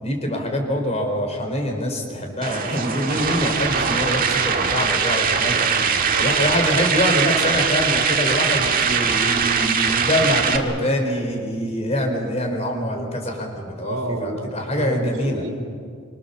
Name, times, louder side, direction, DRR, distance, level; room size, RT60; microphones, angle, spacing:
voice 1, 0.0-5.5 6.2-15.5, equal, 30° left, 3 dB, 4.5 m, -24 dB
sound 1, 2.4-10.6, right 6 dB, 45° right, 1.9 m, -21 dB
voice 2, 5.5-6.4 13.8-15.5, right 1 dB, 85° right, 5 dB, 3.2 m, -30 dB
26.0 x 25.5 x 7.2 m, 2.2 s
head